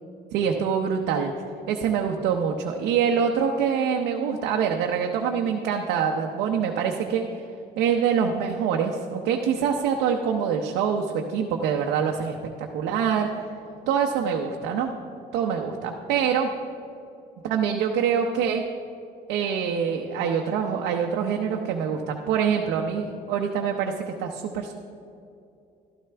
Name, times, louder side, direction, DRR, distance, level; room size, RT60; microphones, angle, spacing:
voice 1, 0.3-1.3 1.7-7.3 7.8-13.3 13.9-14.9 15.3-16.5 17.4-18.6 19.3-24.7, right 7 dB, 90° right, 2 dB, 0.7 m, -25 dB
13.0 x 12.0 x 3.4 m, 2.6 s
cardioid pair, 110°, 17 cm